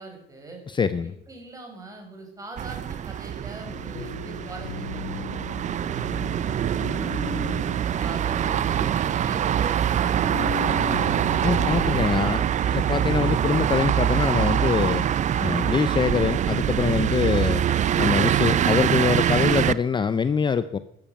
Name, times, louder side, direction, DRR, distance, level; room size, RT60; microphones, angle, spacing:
voice 1, 0.0-0.6 1.0-7.2 7.6-11.1, right 2 dB, 20° right, 2 dB, 6.1 m, -43 dB
voice 2, 0.7-1.1 11.4-12.4 12.7-15.1 15.4-17.7 18.0-20.8, left 6 dB, 30° left, 14 dB, 0.6 m, -24 dB
sound 1, 2.6-19.7, right 10 dB, 45° right, 0.6 m, -24 dB
sound 2, 3.7-12.0, left 5 dB, 60° left, 4.4 m, -36 dB
13.0 x 12.5 x 7.1 m, 0.76 s
cardioid pair, 110°, 17 cm